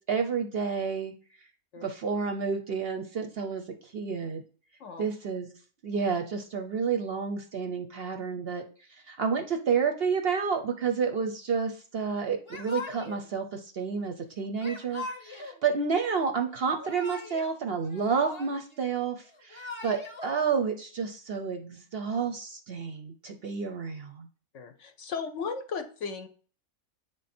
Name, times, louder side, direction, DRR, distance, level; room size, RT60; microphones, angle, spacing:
voice 1, 0.1-1.1 1.8-4.4 5.0-5.5 5.8-8.6 9.1-24.3, right 5 dB, 55° right, 6 dB, 0.7 m, -30 dB
Yell / Crying sobbing, 12.5-13.3 14.6-15.6 16.6-17.5 17.8-18.8 19.3-20.3, left 3 dB, 25° left, 0.7 m, -40 dB
voice 2, 24.5-26.3, left 5 dB, 65° left, 8 dB, 0.9 m, -36 dB
8.0 x 3.4 x 4.2 m, 0.41 s
omnidirectional pair, 1.5 m